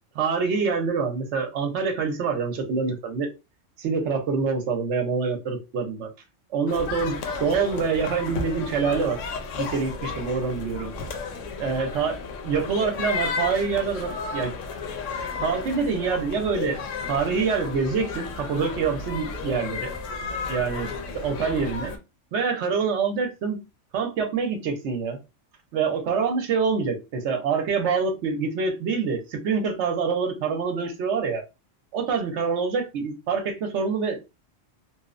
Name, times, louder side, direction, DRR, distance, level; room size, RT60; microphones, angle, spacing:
voice 1, 0.1-3.3 3.8-6.1 6.5-9.2 9.6-10.9 11.6-14.6 15.4-16.8 17.1-19.9 20.5-20.9 21.1-21.9 22.3-23.6 23.9-25.2 25.7-31.4 31.9-34.2, right 5 dB, 65° right, 5 dB, 0.9 m, -26 dB
sound 1, 6.7-22.0, left 4 dB, 75° left, 0.9 m, -33 dB
2.8 x 2.0 x 2.4 m, 0.26 s
omnidirectional pair, 1.3 m